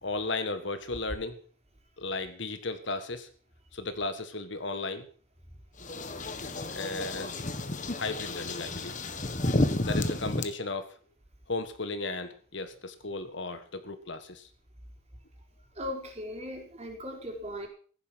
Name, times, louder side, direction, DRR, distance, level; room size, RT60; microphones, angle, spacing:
voice 1, 0.0-1.4 2.0-3.3 3.7-5.1 6.7-7.4 8.0-8.9 9.8-10.9 11.5-14.5, left 3 dB, 60° left, 9 dB, 1.7 m, -35 dB
sound 1, 5.8-10.4, left 2 dB, 40° left, 1.5 m, -31 dB
voice 2, 15.8-17.7, left 1 dB, 30° right, 1 dB, 4.5 m, -38 dB
15.0 x 11.5 x 6.3 m, 0.43 s
head